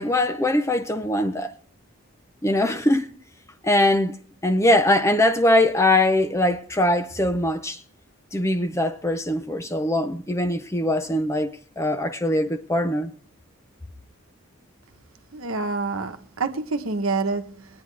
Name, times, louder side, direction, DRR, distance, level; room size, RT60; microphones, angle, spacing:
voice 1, 0.0-1.5 2.4-3.1 3.6-4.2 4.4-7.8 8.3-13.1, left 1 dB, 15° left, 0.6 m, -22 dB
voice 2, 15.3-17.7, right 3 dB, 70° right, 1.1 m, -27 dB
20.0 x 9.5 x 3.3 m
head